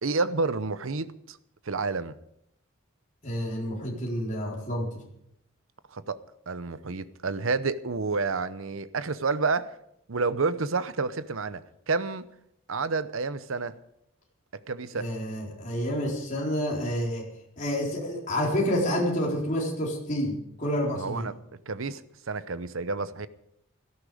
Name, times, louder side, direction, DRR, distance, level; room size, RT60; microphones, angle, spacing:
voice 1, 0.0-1.4 1.6-2.2 5.9-9.8 10.1-12.3 12.7-13.8 14.7-15.1 20.9-21.4 21.7-22.0 22.3-23.3, right 4 dB, 75° right, 14 dB, 0.8 m, -29 dB
voice 2, 3.2-5.0 14.9-17.3 17.6-21.3, equal, 35° left, -3 dB, 4.1 m, -29 dB
17.0 x 14.0 x 5.1 m, 0.77 s
head